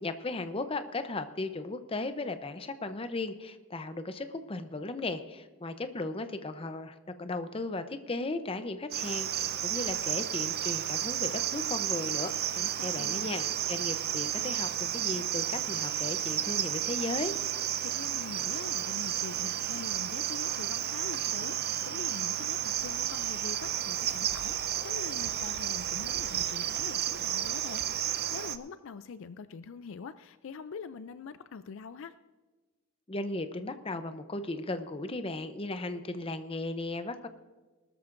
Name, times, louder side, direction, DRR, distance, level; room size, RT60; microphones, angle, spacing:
voice 1, 0.0-17.3 33.1-37.3, left 2 dB, 25° left, 10 dB, 0.7 m, -36 dB
Cricket, 8.9-28.6, right 11 dB, 45° right, 0.6 m, -32 dB
voice 2, 12.6-13.3 17.8-32.2, left 5 dB, 60° left, 13 dB, 0.4 m, -44 dB
20.0 x 13.0 x 2.6 m, 1.3 s
head